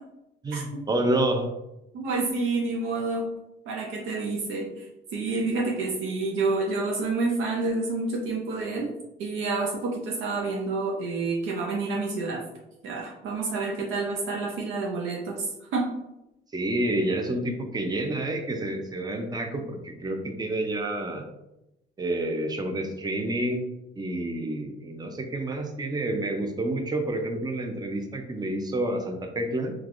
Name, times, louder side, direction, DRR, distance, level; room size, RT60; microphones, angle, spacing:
voice 1, 0.4-1.5 5.3-5.6 16.5-21.2 22.0-23.6 24.0-29.7, right 1 dB, 20° right, 4 dB, 0.5 m, -29 dB
voice 2, 1.9-3.3 3.7-4.9 5.1-8.9 9.2-12.4 12.8-15.9, right 3 dB, 85° right, -1 dB, 0.5 m, -28 dB
3.2 x 2.4 x 2.5 m, 0.92 s
cardioid pair, 90°, 20 cm